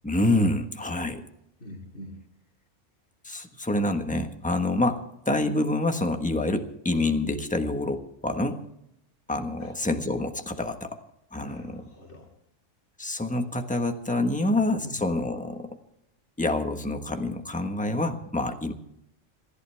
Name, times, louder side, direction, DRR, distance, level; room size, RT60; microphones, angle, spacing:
voice 1, 0.0-1.2 3.2-5.0 5.2-8.6 9.3-10.9 11.3-11.8 13.0-15.7 16.4-18.7, left 2 dB, 5° left, 5 dB, 1.3 m, -27 dB
voice 2, 1.6-2.2 9.6-9.7 11.4-12.3 14.4-15.0, left 1 dB, 60° left, -3 dB, 3.6 m, -43 dB
27.5 x 11.5 x 3.4 m, 0.79 s
omnidirectional pair, 1.3 m